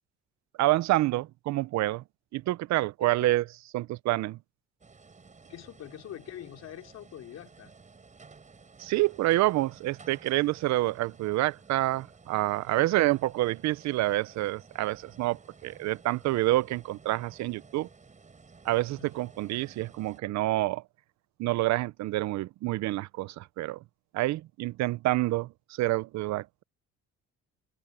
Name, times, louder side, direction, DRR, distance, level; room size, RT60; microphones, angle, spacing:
voice 1, 0.6-2.0 2.3-3.4 3.7-4.4 8.8-17.9 18.6-20.8 21.4-23.8 24.1-26.6, right 17 dB, 70° right, 0.6 m, -28 dB
sound 1, 4.8-20.2, right 4 dB, 25° right, 7.4 m, -54 dB
voice 2, 5.5-7.7 12.7-12.9 19.0-19.1, left 11 dB, 60° left, 3.8 m, -44 dB
cardioid pair, 120°, 29 cm